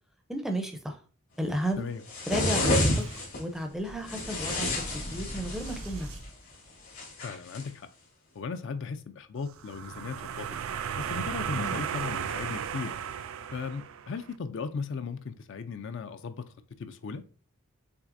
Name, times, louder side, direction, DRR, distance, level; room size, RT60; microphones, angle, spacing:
voice 1, 0.3-1.0 1.4-1.9 2.3-3.0 3.4-4.7 5.1-6.1 11.6-11.8, right 1 dB, ahead, 0.5 m, -33 dB
sound 1, 2.1-3.4 4.1-5.9 6.9-7.7, left 1 dB, 75° left, 2.2 m, -29 dB
Boom, 2.7-7.1, right 1 dB, 90° right, 1.5 m, -42 dB
voice 2, 7.2-7.9 8.4-10.5 11.0-13.0 13.5-16.5 16.8-17.2, left 5 dB, 55° left, 0.4 m, -37 dB
sound 2, 9.5-14.2, right 8 dB, 65° right, 0.3 m, -35 dB
6.0 x 3.2 x 2.5 m
head